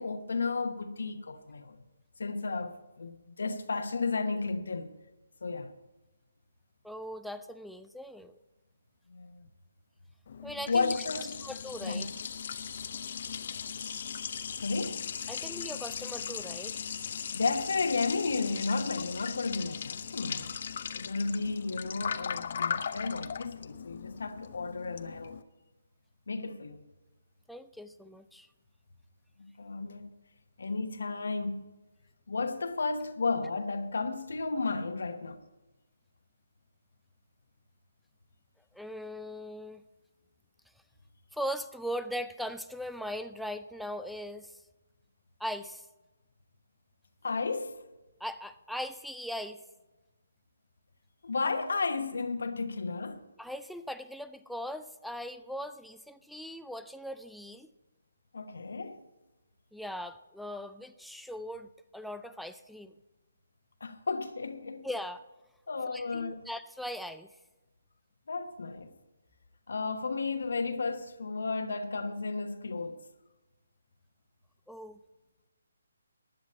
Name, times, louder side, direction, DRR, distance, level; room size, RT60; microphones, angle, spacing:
voice 1, 0.0-1.8 2.2-4.9 5.4-5.7 9.1-9.5 10.7-11.4 11.8-12.1 14.6-15.0 17.3-20.6 20.9-25.4 26.3-26.8 29.4-30.1 30.6-31.6 32.3-35.4 47.2-47.8 51.2-53.2 58.3-59.0 63.8-64.9 65.7-66.5 68.3-69.0 69.7-73.0, left 4 dB, 70° left, 1.1 m, -33 dB
voice 2, 6.8-8.3 10.4-10.9 11.4-12.1 15.3-16.8 27.5-28.5 38.7-39.8 41.3-44.6 45.4-45.9 48.2-49.6 53.4-57.7 59.7-62.9 64.8-65.2 65.9-67.3 74.7-75.0, equal, ahead, 0.3 m, -39 dB
Liquid, 10.3-25.4, left 7 dB, 50° left, 0.6 m, -38 dB
16.0 x 10.5 x 4.3 m
figure-of-eight pair, 150°, 0 cm